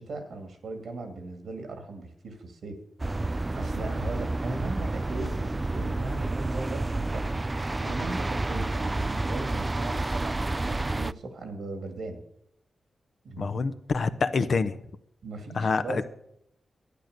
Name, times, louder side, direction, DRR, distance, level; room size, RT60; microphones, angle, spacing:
voice 1, 0.0-2.8 3.3-10.3 10.7-12.2 13.2-13.6 15.2-16.0, right 2 dB, 80° right, 7 dB, 2.3 m, -38 dB
sound 1, 3.0-11.1, right 2 dB, 30° right, 0.4 m, -30 dB
voice 2, 13.4-14.8 15.5-16.0, left 4 dB, 65° left, 10 dB, 0.8 m, -26 dB
11.5 x 9.2 x 6.6 m, 0.75 s
cardioid pair, 45°, 0 cm